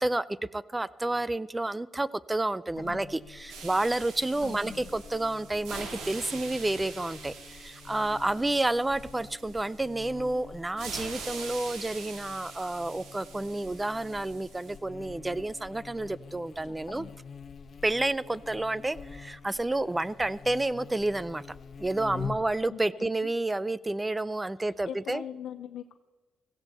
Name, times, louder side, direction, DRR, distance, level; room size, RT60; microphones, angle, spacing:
voice 1, 0.5-17.1 17.8-21.5 21.8-25.2, right 2 dB, 15° right, 20 dB, 0.4 m, -30 dB
Buzz, 2.7-22.5, left 5 dB, 50° left, 1.2 m, -46 dB
voice 2, 2.8-3.2 4.4-4.8 16.6-17.2 22.6-23.3 24.9-26.0, left 9 dB, 65° left, 10 dB, 0.5 m, -42 dB
sound 1, 3.5-10.1 10.8-14.8, right 4 dB, 85° right, 3.2 m, -44 dB
16.5 x 15.5 x 4.2 m, 1.3 s
cardioid pair, 90°, 0 cm